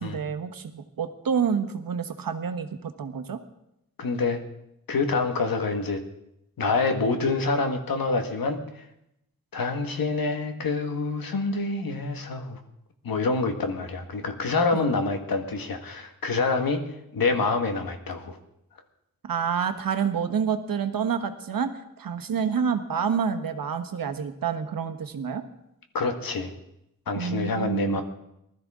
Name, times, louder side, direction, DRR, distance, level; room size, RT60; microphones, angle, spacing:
voice 1, 0.0-3.4 14.7-14.9 19.3-21.7 22.0-25.4 27.1-28.0, right 7 dB, 75° right, 7 dB, 1.3 m, -28 dB
voice 2, 4.0-4.4 4.9-6.0 6.6-8.8 9.5-12.6 13.0-16.8 17.1-18.4 25.9-26.5 27.1-28.0, left 3 dB, 90° left, 5 dB, 1.7 m, -26 dB
19.5 x 13.0 x 3.7 m, 0.81 s
wide cardioid pair, 115°, 34 cm